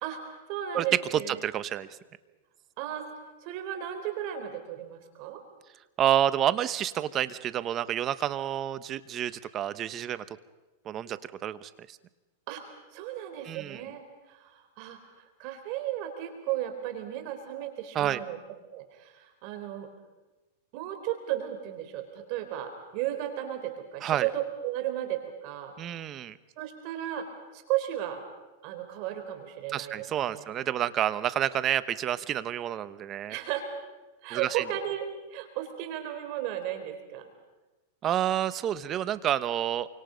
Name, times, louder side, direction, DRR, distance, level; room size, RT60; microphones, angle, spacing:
voice 1, 0.0-1.4 2.8-3.1 3.4-5.4 12.5-14.0 14.3-15.0 15.4-18.4 18.7-19.9 20.7-25.8 26.6-27.2 27.5-28.2 28.6-30.5 33.3-33.6 34.2-37.2, right 12 dB, 50° right, 6 dB, 4.1 m, -34 dB
voice 2, 1.1-1.9 6.0-10.2 10.8-12.0 13.4-13.8 17.9-18.2 24.0-24.3 25.8-26.4 29.7-33.4 34.3-34.6 38.0-39.9, right 11 dB, 30° right, 14 dB, 1.1 m, -29 dB
28.0 x 25.0 x 5.3 m, 1.1 s
hypercardioid pair, 130°, 0 cm